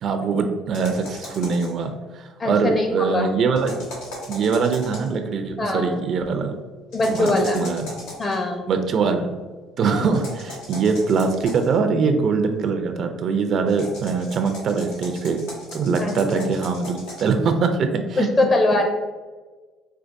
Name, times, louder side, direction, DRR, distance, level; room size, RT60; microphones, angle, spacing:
voice 1, 0.0-3.8 4.3-6.6 7.1-7.9 8.7-9.4 9.8-15.4 15.7-18.3, right 5 dB, 55° right, 6 dB, 0.4 m, -23 dB
sound 1, 0.7-1.8 3.5-5.2 6.9-8.4 10.1-11.8 13.7-17.3, left 1 dB, 90° left, 0.9 m, -38 dB
voice 2, 2.4-3.3 5.6-6.0 6.9-7.6 8.2-8.6 16.0-16.5 18.2-18.9, left 2 dB, 35° left, 3 dB, 0.7 m, -22 dB
4.5 x 2.2 x 2.5 m, 1.3 s
supercardioid pair, 85°, 0 cm